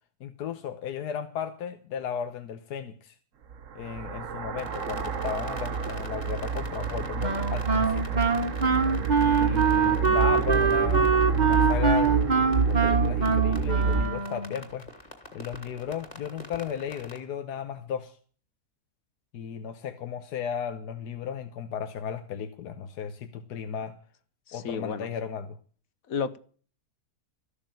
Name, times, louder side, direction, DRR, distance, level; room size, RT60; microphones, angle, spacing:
voice 1, 0.2-3.1 3.7-8.2 9.2-11.1 11.4-14.9 15.3-18.1 19.3-23.9 24.5-25.6, left 8 dB, 80° left, 8 dB, 1.5 m, -35 dB
sound 1, 3.5-14.0, right 6 dB, 55° right, 1.3 m, -28 dB
sound 2, 4.6-17.2, left 1 dB, 25° left, 2.8 m, -45 dB
Wind instrument woodwind instrument, 7.2-14.6, right 5 dB, 30° right, 1.1 m, -24 dB
voice 2, 24.5-25.1 26.1-26.4, left 6 dB, 65° left, 14 dB, 1.3 m, -31 dB
14.0 x 6.7 x 8.9 m, 0.43 s
omnidirectional pair, 1.7 m